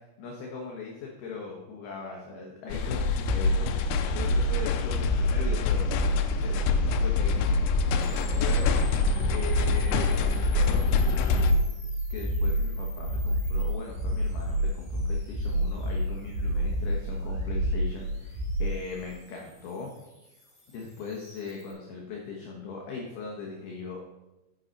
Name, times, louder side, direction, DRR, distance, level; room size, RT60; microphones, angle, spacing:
voice 1, 0.2-3.7 4.1-7.5 7.9-8.7 9.3-11.6 12.1-19.9 20.7-24.0, left 4 dB, 70° left, -1 dB, 2.5 m, -39 dB
sound 1, 2.7-11.5, left 5 dB, 90° left, 3.2 m, -26 dB
sound 2, 3.0-18.8, equal, 65° right, 6.1 m, -29 dB
sound 3, 8.0-21.7, left 1 dB, 10° left, 2.5 m, -52 dB
9.5 x 8.7 x 4.0 m, 1.0 s
omnidirectional pair, 5.7 m